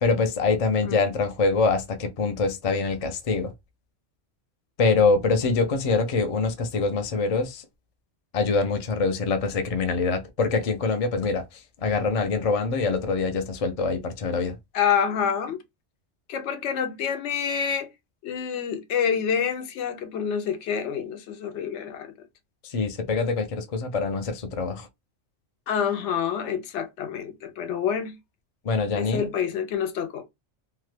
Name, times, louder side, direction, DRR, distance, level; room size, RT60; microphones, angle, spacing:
voice 1, 0.0-3.5 4.8-7.6 8.3-14.6 22.6-24.9 28.6-29.3, left 4 dB, 55° left, 0.4 m, -24 dB
voice 2, 14.7-15.6 16.3-17.9 18.2-22.1 25.7-28.2 28.9-30.2, left 7 dB, 70° left, 0.9 m, -27 dB
2.8 x 2.2 x 3.1 m
omnidirectional pair, 1.3 m